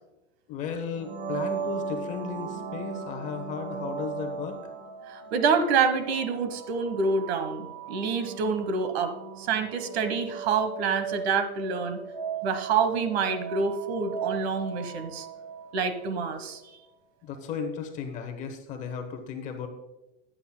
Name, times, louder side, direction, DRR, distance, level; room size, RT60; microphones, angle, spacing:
voice 1, 0.5-4.6 17.2-19.7, left 6 dB, 20° left, 5 dB, 0.8 m, -35 dB
sound 1, 0.9-16.6, right 6 dB, 90° right, 3.7 m, -37 dB
voice 2, 5.1-12.0 12.4-15.3 15.7-16.6, right 5 dB, 65° right, 10 dB, 1.2 m, -27 dB
14.0 x 9.9 x 2.2 m, 0.99 s
supercardioid pair, 175°, 34 cm